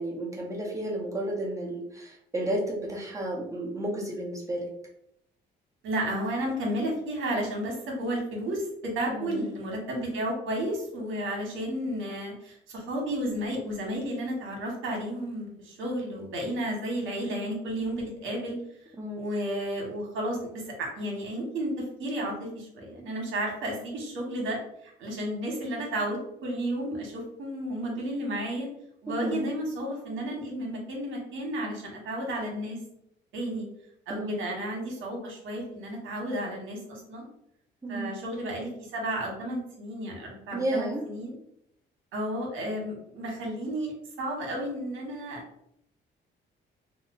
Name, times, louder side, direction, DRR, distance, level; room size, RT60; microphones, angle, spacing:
voice 1, 0.0-4.7 9.1-9.5 19.0-19.3 29.2-29.5 34.1-34.5 37.8-38.1 40.5-41.0, right 1 dB, 15° right, -2 dB, 1.0 m, -32 dB
voice 2, 5.8-18.5 19.2-24.6 24.8-28.7 29.0-32.8 33.3-33.7 34.1-37.2 37.9-41.4 42.1-45.4, right 1 dB, 80° right, 0 dB, 1.1 m, -32 dB
2.9 x 2.1 x 3.6 m, 0.75 s
cardioid pair, 90°, 20 cm